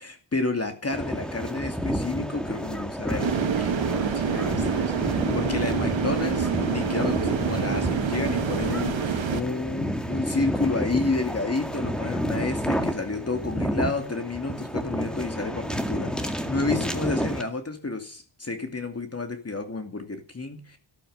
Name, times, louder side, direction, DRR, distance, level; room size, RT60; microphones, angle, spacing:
voice 1, 0.0-20.8, left 3 dB, 35° left, 6 dB, 2.5 m, -31 dB
sound 1, 0.9-17.4, equal, ahead, 2.2 m, -30 dB
sound 2, 3.2-9.4, right 7 dB, 90° right, 1.7 m, -27 dB
13.5 x 13.5 x 6.6 m, 0.38 s
wide cardioid pair, 125°, 44 cm